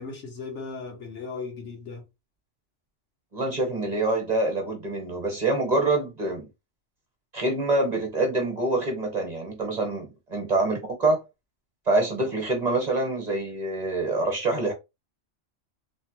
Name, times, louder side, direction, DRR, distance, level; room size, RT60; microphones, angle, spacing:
voice 1, 0.0-2.0, left 4 dB, 75° left, 1.2 m, -37 dB
voice 2, 3.3-6.5 7.3-11.2 11.9-14.7, right 2 dB, 40° right, 0.9 m, -26 dB
3.1 x 2.0 x 2.9 m
omnidirectional pair, 1.2 m